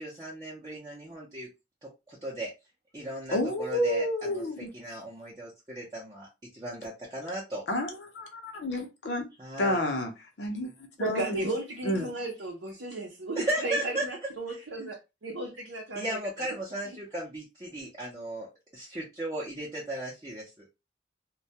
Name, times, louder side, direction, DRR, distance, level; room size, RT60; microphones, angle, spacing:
voice 1, 0.0-1.5 1.8-2.5 2.9-6.3 6.5-7.6 9.4-9.8 13.4-14.1 16.0-20.7, right 1 dB, 20° right, 0.6 m, -36 dB
voice 2, 3.3-4.7 7.7-9.2 9.6-10.1 10.4-10.7 11.0-11.4 11.8-12.1, left 1 dB, 65° left, 0.6 m, -30 dB
voice 3, 11.0-14.9 15.2-16.5, right 2 dB, 80° right, 0.7 m, -34 dB
2.2 x 2.1 x 2.7 m
head